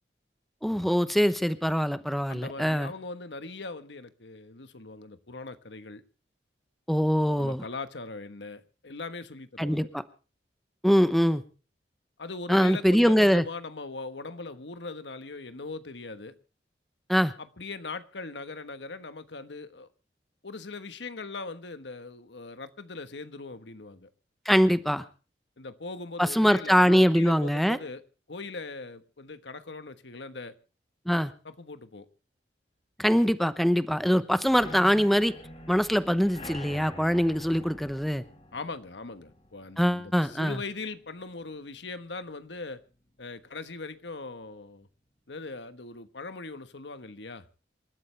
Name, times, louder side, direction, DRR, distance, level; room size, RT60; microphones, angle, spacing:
voice 1, 0.6-2.9 6.9-7.6 9.6-10.0 10.8-11.4 12.5-13.4 17.1-17.3 24.5-25.0 26.2-27.8 31.1-31.3 33.0-35.3 35.7-38.2 39.8-40.6, equal, ahead, 0.9 m, -23 dB
voice 2, 2.3-6.0 7.4-9.9 12.2-16.3 17.4-19.9 20.4-24.1 25.6-30.6 31.4-32.1 38.5-42.8 43.2-44.9 45.3-47.5, left 3 dB, 90° left, 1.3 m, -40 dB
sound 1, 34.4-42.1 42.4-42.8 43.1-43.2 43.6-43.7, left 1 dB, 40° left, 4.1 m, -47 dB
27.5 x 13.0 x 3.3 m
head